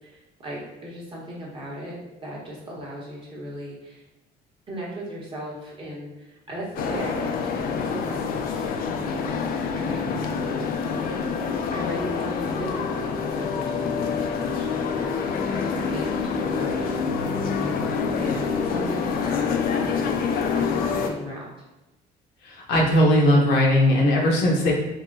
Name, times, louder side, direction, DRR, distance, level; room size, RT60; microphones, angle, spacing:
voice 1, 0.0-2.0 2.2-4.0 4.7-21.4, equal, 30° right, -5 dB, 1.0 m, -37 dB
sound 1, 6.8-21.1, left 5 dB, 60° left, 0.4 m, -26 dB
voice 2, 22.4-24.7, equal, 80° left, -3 dB, 0.9 m, -19 dB
3.6 x 2.1 x 2.6 m, 1.0 s
cardioid pair, 110°, 17 cm